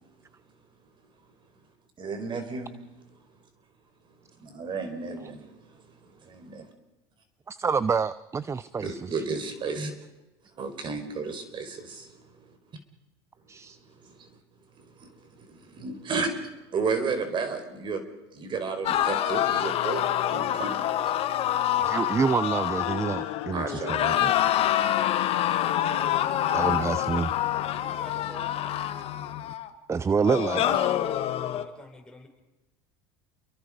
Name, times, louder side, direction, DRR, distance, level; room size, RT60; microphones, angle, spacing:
voice 1, 2.0-2.7 4.4-5.5 6.0-6.7 8.8-9.9 10.6-12.1 14.0-14.3 14.8-16.4 16.7-18.0 18.3-20.8 23.5-24.2 30.7-30.8, right 4 dB, 40° right, 7 dB, 4.8 m, -33 dB
voice 2, 7.5-9.3 13.5-13.8 21.8-24.3 26.5-27.3 29.9-31.0, right 5 dB, 20° right, 17 dB, 0.7 m, -28 dB
sound 1, 18.8-23.5 23.8-29.7 30.2-31.6, left 11 dB, 50° left, 1.8 m, -26 dB
sound 2, 19.0-29.5, left 15 dB, 75° left, 1.5 m, -38 dB
voice 3, 27.8-28.7 31.3-32.3, left 2 dB, 5° left, 0 dB, 6.7 m, -48 dB
29.0 x 22.5 x 5.1 m, 1.0 s
supercardioid pair, 100°, 13 cm